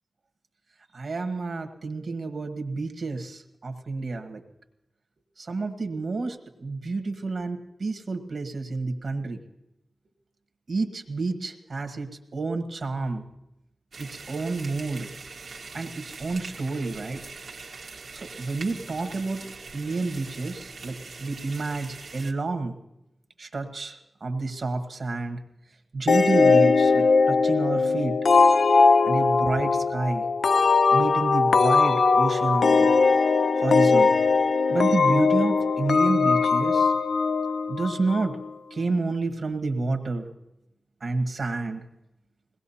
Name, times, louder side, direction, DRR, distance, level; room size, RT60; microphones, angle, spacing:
voice 1, 0.9-4.4 5.4-9.4 10.7-13.2 14.0-15.1 15.7-17.2 18.1-19.4 19.7-22.7 23.4-25.4 25.9-28.1 29.0-30.2 30.9-32.9 33.6-34.1 34.7-36.9 37.7-38.3 38.7-40.3 41.0-41.8, right 3 dB, 65° right, 5 dB, 1.4 m, -29 dB
sound 1, 13.9-22.3, right 4 dB, 85° right, 1.3 m, -42 dB
sound 2, 26.1-38.5, left 4 dB, 80° left, 0.4 m, -20 dB
21.5 x 18.5 x 2.8 m, 0.91 s
cardioid pair, 50°, 0 cm